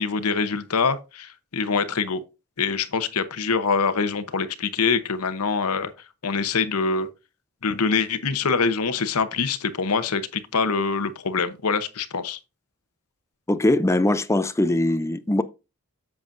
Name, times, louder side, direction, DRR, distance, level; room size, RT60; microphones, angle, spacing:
voice 1, 0.0-2.2 2.6-5.9 6.2-7.1 7.6-12.4, left 5 dB, 80° left, 0.9 m, -24 dB
voice 2, 13.5-15.4, left 1 dB, 15° left, 0.5 m, -21 dB
7.8 x 7.2 x 2.6 m
head